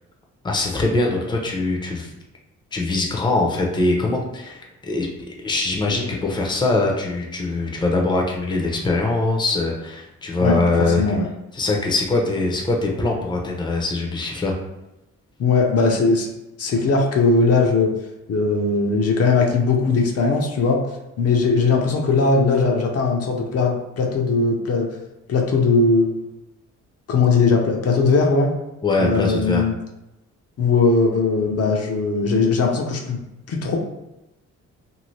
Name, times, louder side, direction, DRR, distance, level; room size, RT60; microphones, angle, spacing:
voice 1, 0.4-2.1 2.7-5.1 5.4-11.2 11.5-14.5 28.8-29.6, left 2 dB, 15° left, 0 dB, 0.6 m, -22 dB
voice 2, 15.4-16.3 16.6-17.9 18.3-20.8 21.2-24.9 25.3-26.2 27.1-28.6 29.0-29.7 30.6-33.2 33.5-33.8, left 4 dB, 55° left, 0 dB, 0.7 m, -19 dB
2.7 x 2.6 x 3.1 m, 0.95 s
cardioid pair, 90°, 30 cm